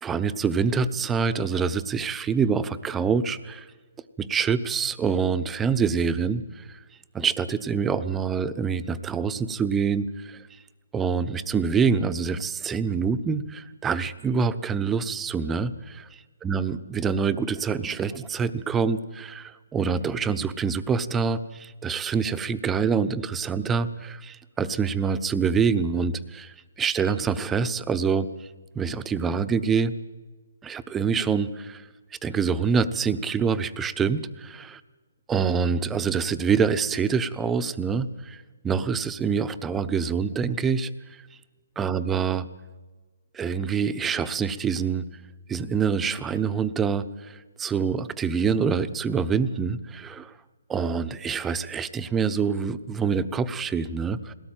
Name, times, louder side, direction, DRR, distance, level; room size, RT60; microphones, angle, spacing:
voice 1, 0.0-3.6 4.2-6.8 7.1-10.4 10.9-16.1 16.4-28.3 28.7-29.9 30.6-31.8 32.2-34.8 35.3-40.9 41.8-42.4 43.3-45.1 45.5-50.3 50.7-54.3, right 6 dB, 10° right, 12 dB, 0.9 m, -26 dB
21.0 x 18.0 x 9.1 m, 1.3 s
hypercardioid pair, 145°, 0 cm